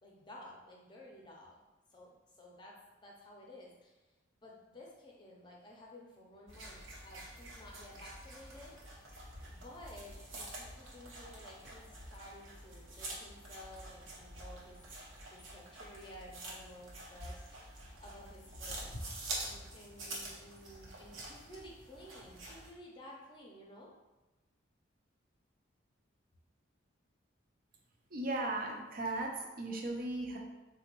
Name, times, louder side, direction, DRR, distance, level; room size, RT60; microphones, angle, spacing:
voice 1, 0.0-1.6 1.9-2.7 3.0-4.0 4.4-8.7 9.4-14.8 15.2-19.0 19.4-23.9, left 1 dB, 25° left, -2 dB, 0.5 m, -54 dB
sound 1, 6.5-22.7, right 1 dB, 80° right, 0.8 m, -47 dB
voice 2, 28.1-30.4, right 2 dB, 45° right, 1 dB, 0.5 m, -37 dB
4.0 x 2.2 x 3.0 m, 1.1 s
head